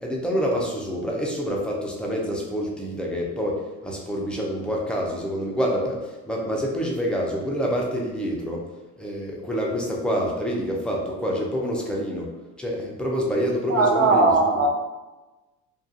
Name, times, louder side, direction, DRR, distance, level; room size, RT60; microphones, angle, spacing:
voice 1, 0.0-8.6 9.0-12.3 12.6-14.7, equal, 5° left, -3 dB, 0.5 m, -27 dB
voice 2, 13.7-14.7, right 3 dB, 45° right, 2 dB, 0.5 m, -18 dB
2.4 x 2.3 x 2.7 m, 1.1 s
supercardioid pair, 100°, 34 cm